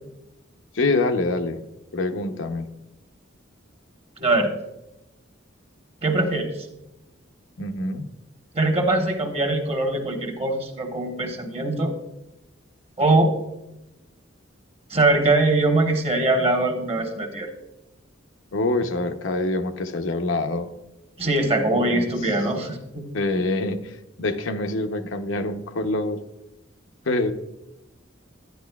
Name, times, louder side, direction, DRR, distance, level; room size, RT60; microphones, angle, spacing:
voice 1, 0.7-1.6 1.9-2.7 7.6-8.1 18.5-20.7 21.7-22.1 23.1-26.2 27.1-27.3, left 2 dB, 70° left, 6 dB, 0.7 m, -25 dB
voice 2, 4.2-4.5 6.0-6.7 8.5-11.9 13.0-13.3 14.9-17.5 21.2-23.0, right 2 dB, 30° right, 3 dB, 1.1 m, -22 dB
10.5 x 10.5 x 2.3 m, 0.93 s
head